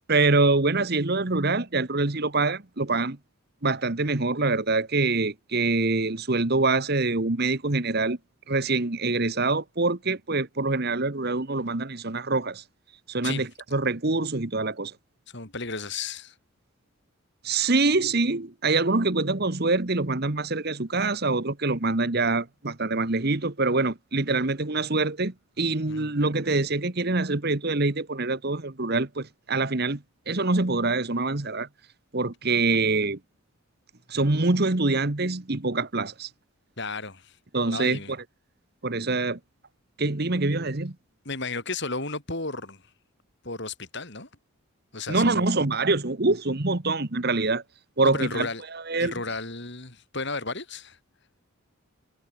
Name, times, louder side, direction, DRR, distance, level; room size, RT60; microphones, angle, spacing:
voice 1, 0.1-3.2 3.6-8.2 8.5-12.6 13.1-14.9 17.4-31.7 32.1-33.2 34.1-36.3 37.5-38.2 38.8-39.4 40.0-40.9 45.1-47.6 48.0-49.1, right 3 dB, 45° right, 1.4 m, -25 dB
voice 2, 15.3-16.3 25.9-26.2 36.8-37.4 37.7-38.1 41.2-42.8 43.4-44.3 44.9-45.5 48.0-48.6 49.0-51.0, left 3 dB, 55° left, 5.0 m, -33 dB
head